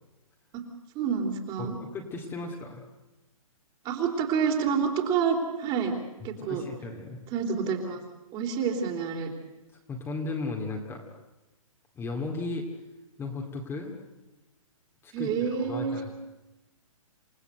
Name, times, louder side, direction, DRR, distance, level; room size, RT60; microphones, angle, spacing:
voice 1, 0.9-1.8 3.8-5.9 6.2-6.6 7.3-8.0 8.3-9.3 15.1-16.1, right 6 dB, 25° right, 3 dB, 3.4 m, -28 dB
voice 2, 1.6-2.8 6.4-7.2 9.9-11.0 12.0-12.6 13.2-13.9 15.0-16.1, left 3 dB, 15° left, 1 dB, 2.3 m, -35 dB
28.5 x 16.5 x 8.0 m, 1.0 s
hypercardioid pair, 150°, 18 cm